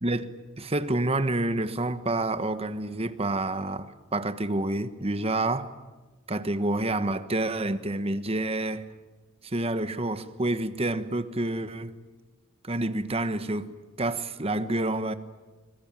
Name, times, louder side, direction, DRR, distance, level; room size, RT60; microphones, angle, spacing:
voice 1, 0.6-5.7 6.3-8.8 9.4-12.0 12.6-15.1, right 2 dB, 30° right, 1.3 m, -28 dB
25.0 x 21.5 x 9.0 m
head